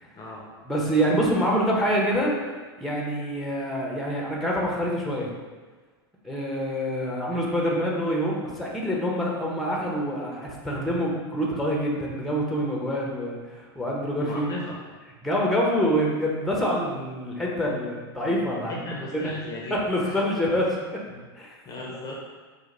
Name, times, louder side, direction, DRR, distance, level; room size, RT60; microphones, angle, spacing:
voice 1, 0.2-0.5 14.2-14.8 18.7-20.1 21.1-21.2 21.7-22.2, left 1 dB, 25° left, -2 dB, 0.7 m, -36 dB
voice 2, 0.7-5.3 6.2-14.5 15.2-18.8 19.1-19.3 19.7-21.0 21.3-21.6, equal, ahead, -3 dB, 0.8 m, -26 dB
5.0 x 2.2 x 3.8 m, 1.4 s
hypercardioid pair, 115°, 13 cm